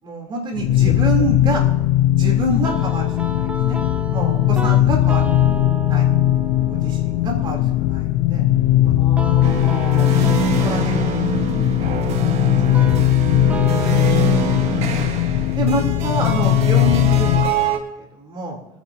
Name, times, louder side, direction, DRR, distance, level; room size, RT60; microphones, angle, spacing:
voice 1, 0.0-1.6 2.2-3.8 4.1-5.6 5.9-6.1 6.7-8.4 8.8-8.9 10.6-11.9 12.6-12.9 13.7-14.2 14.6-14.9 15.6-17.7 18.0-18.6, right 2 dB, 40° right, 1 dB, 3.5 m, -28 dB
sound 1, 0.5-17.6, left 13 dB, 80° left, 0.5 m, -18 dB
sound 2, 2.6-17.6, right 2 dB, 10° right, 1.0 m, -34 dB
voice 2, 9.0-10.2 11.5-11.6 13.3-13.9, left 5 dB, 40° left, 0 dB, 2.4 m, -33 dB
sound 3, 9.4-17.8, right 6 dB, 60° right, 1.4 m, -25 dB
26.0 x 10.0 x 2.9 m, 0.92 s
supercardioid pair, 105°, 12 cm